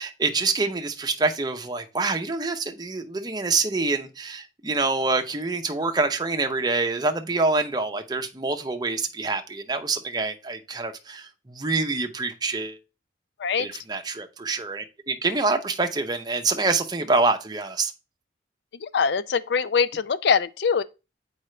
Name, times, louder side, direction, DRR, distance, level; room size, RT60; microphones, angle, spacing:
voice 1, 0.0-12.8 13.6-17.9, right 3 dB, 20° right, 0.7 m, -26 dB
voice 2, 18.8-20.8, left 6 dB, 65° left, 0.4 m, -23 dB
7.7 x 4.7 x 3.2 m
head